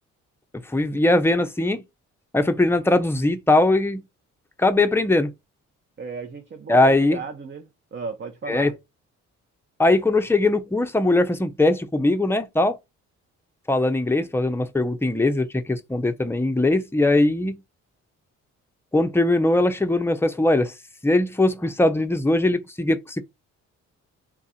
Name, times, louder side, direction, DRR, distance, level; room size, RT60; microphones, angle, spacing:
voice 1, 0.5-1.8 2.3-4.0 4.6-5.3 6.7-7.2 8.5-8.7 9.8-12.8 13.7-17.6 18.9-20.7 21.0-23.2, left 2 dB, 10° left, 0.6 m, -20 dB
voice 2, 6.0-8.7, right 4 dB, 35° right, 0.8 m, -35 dB
3.7 x 2.4 x 4.1 m
cardioid pair, 90°, 30 cm